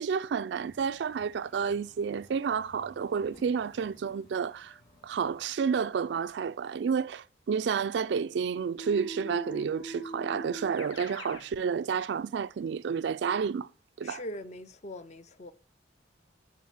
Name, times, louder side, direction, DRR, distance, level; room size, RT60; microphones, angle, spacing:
voice 1, 0.0-4.7 5.0-13.7 14.0-14.2, right 6 dB, 65° right, 0.3 m, -30 dB
sound 1, 0.5-5.5, equal, 55° left, 2.8 m, -58 dB
Keyboard (musical), 8.8-11.5, right 1 dB, 80° left, 1.2 m, -41 dB
voice 2, 14.0-15.5, left 1 dB, 35° left, 0.5 m, -41 dB
8.5 x 4.0 x 7.1 m
head